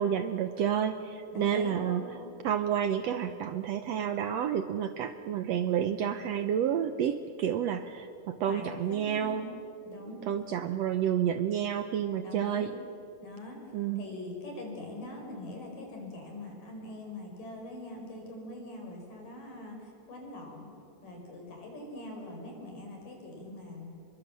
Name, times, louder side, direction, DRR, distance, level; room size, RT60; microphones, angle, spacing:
voice 1, 0.0-2.0 2.4-9.5 10.3-12.7 13.7-14.0, right 9 dB, 70° right, 9 dB, 1.6 m, -30 dB
voice 2, 1.3-2.2 8.5-9.5 9.8-10.3 12.2-12.7 13.2-13.6 14.0-20.7 21.0-23.9, left 2 dB, 80° left, 1 dB, 6.8 m, -43 dB
28.5 x 22.5 x 7.6 m, 2.5 s
omnidirectional pair, 3.8 m